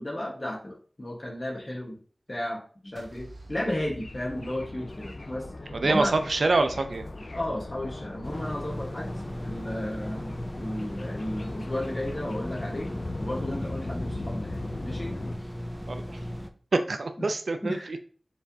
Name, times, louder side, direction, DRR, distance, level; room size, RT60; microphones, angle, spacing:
voice 1, 0.0-2.0 2.3-5.4 5.8-6.2 7.3-9.1 9.4-12.9 13.2-15.2 17.2-17.3 17.6-18.0, left 1 dB, 40° left, -3 dB, 1.3 m, -34 dB
sound 1, 3.0-5.3, right 1 dB, 75° right, 0.9 m, -48 dB
sound 2, 3.8-15.3, left 2 dB, 60° left, 0.4 m, -39 dB
voice 2, 5.8-7.0 15.9-16.2 16.7-18.0, right 3 dB, 90° right, 7 dB, 0.4 m, -26 dB
sound 3, 8.2-16.5, equal, 5° right, 0.5 m, -37 dB
4.9 x 3.4 x 2.7 m, 0.42 s
wide cardioid pair, 60°, 0 cm